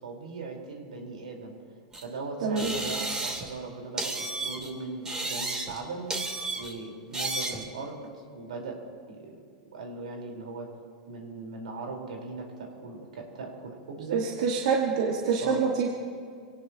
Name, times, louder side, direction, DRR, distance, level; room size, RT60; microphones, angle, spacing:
voice 1, 0.0-1.6 2.0-6.1 6.6-8.8 9.1-9.4 9.7-10.7 11.1-14.2 15.4-15.6, right 3 dB, 85° right, 0 dB, 4.3 m, -39 dB
sound 1, 1.9-2.0 2.6-3.6 4.0-4.7 5.1-5.8 6.1-6.7 7.1-7.7, right 2 dB, 15° right, 2.7 m, -33 dB
voice 2, 2.4-2.7 14.1-15.9, right 5 dB, 65° right, -1 dB, 1.9 m, -26 dB
27.0 x 18.0 x 3.0 m, 2.1 s
hypercardioid pair, 125°, 4 cm